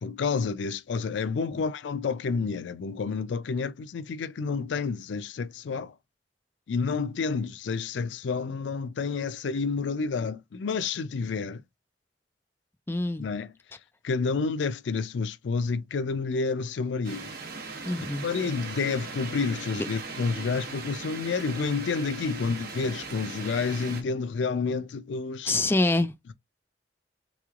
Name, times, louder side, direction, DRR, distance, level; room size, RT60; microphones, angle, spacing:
voice 1, 0.0-5.9 6.7-11.6 13.2-13.5 14.0-17.3 17.7-17.8 18.2-25.6, left 4 dB, 90° left, 0.4 m, -29 dB
voice 2, 12.9-13.3 17.8-18.2 25.5-26.3, left 2 dB, 15° left, 0.3 m, -26 dB
sound 1, 17.0-24.0, right 4 dB, 60° right, 1.0 m, -39 dB
3.7 x 3.0 x 2.3 m
head